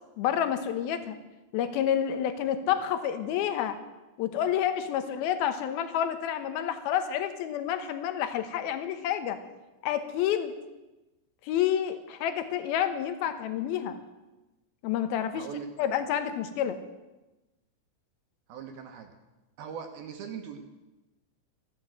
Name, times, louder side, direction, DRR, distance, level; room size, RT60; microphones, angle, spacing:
voice 1, 0.2-1.2 1.5-3.8 4.2-9.4 9.8-10.5 11.4-14.0 14.8-15.5 15.8-16.8, left 10 dB, 70° left, 9 dB, 2.6 m, -29 dB
voice 2, 15.3-15.7 18.5-19.1 19.6-20.6, right 7 dB, 70° right, 4 dB, 2.6 m, -40 dB
15.0 x 12.0 x 7.7 m, 1.1 s
omnidirectional pair, 5.2 m